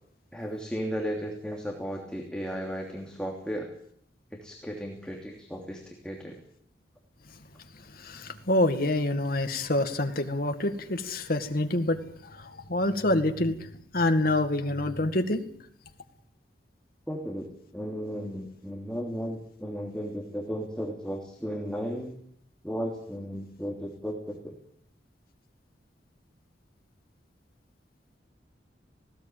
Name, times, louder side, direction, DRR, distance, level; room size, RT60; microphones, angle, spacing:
voice 1, 0.3-3.7 4.3-6.4 17.1-17.5 17.7-22.2 22.6-24.5, equal, 5° left, 0 dB, 3.0 m, -35 dB
voice 2, 8.0-12.0 12.3-13.6 13.9-15.5, left 1 dB, 55° left, 7 dB, 2.1 m, -26 dB
19.5 x 17.5 x 9.1 m, 0.67 s
head